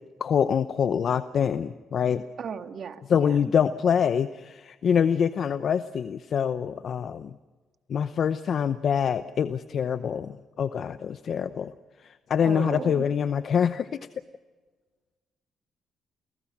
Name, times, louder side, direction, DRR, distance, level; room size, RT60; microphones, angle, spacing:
voice 1, 0.2-2.2 3.1-7.3 7.9-11.7 12.0-14.0, left 7 dB, 60° left, 11 dB, 0.8 m, -25 dB
voice 2, 2.4-3.4 12.4-13.0, right 7 dB, 55° right, 7 dB, 1.8 m, -35 dB
29.5 x 18.5 x 6.1 m, 1.3 s
cardioid pair, 90°, 0 cm